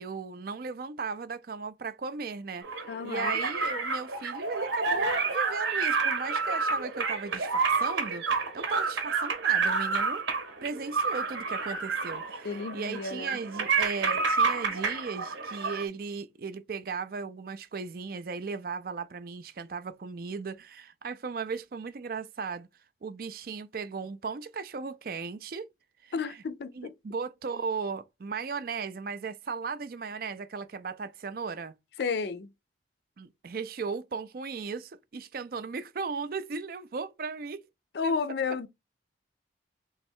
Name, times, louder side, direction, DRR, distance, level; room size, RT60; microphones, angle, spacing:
voice 1, 0.0-2.8 3.0-10.2 10.6-22.7 23.0-25.7 26.0-26.4 26.7-31.7 33.2-37.6 38.0-38.1, right 5 dB, 50° right, 0.4 m, -36 dB
sound 1, 2.6-15.8, right 4 dB, 85° right, 1.0 m, -29 dB
voice 2, 2.9-3.4 12.4-13.4 26.1-26.9 32.0-32.5 37.9-38.7, left 5 dB, 65° left, 0.4 m, -32 dB
3.4 x 3.2 x 4.4 m
head